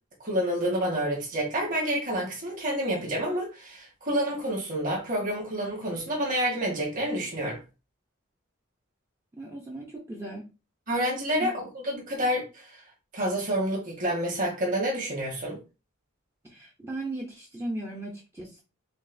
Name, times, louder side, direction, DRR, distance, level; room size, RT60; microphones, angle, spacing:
voice 1, 0.2-7.6 10.9-12.7 13.1-15.6, equal, 35° right, 1.6 m, -28 dB
voice 2, 9.4-10.4 11.4-11.5 16.4-18.6, right 2 dB, 10° right, 0.7 m, -37 dB
5.2 x 2.5 x 2.6 m
head